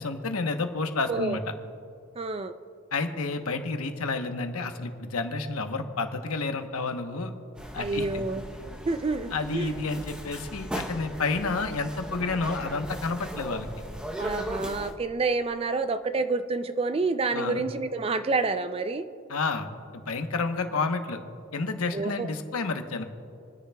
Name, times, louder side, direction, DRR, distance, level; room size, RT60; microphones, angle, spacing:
voice 1, 0.0-1.4 2.9-7.3 7.7-8.0 9.3-13.7 17.3-17.6 19.3-21.2 21.5-23.0, left 3 dB, 85° left, 6 dB, 1.0 m, -30 dB
voice 2, 1.1-1.4 2.2-2.6 7.8-9.7 14.2-19.0 21.9-22.3, right 3 dB, 25° right, 10 dB, 0.4 m, -28 dB
sound 1, 7.6-14.9, equal, 5° right, 0.8 m, -38 dB
29.0 x 10.0 x 2.3 m, 2.5 s
head